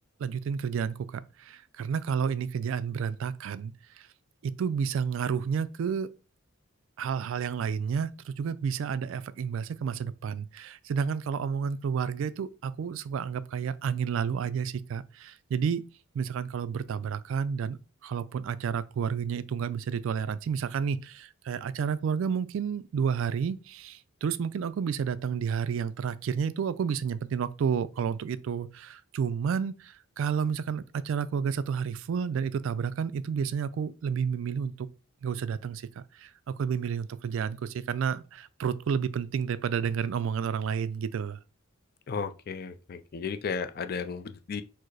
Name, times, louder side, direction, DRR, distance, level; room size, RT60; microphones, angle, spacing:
voice 1, 0.2-4.1 4.4-6.1 7.0-15.8 16.1-17.8 18.0-34.9 35.2-41.4, right 6 dB, 65° right, 0.3 m, -31 dB
voice 2, 42.1-44.6, left 5 dB, 45° left, 0.3 m, -34 dB
4.6 x 2.0 x 4.6 m
head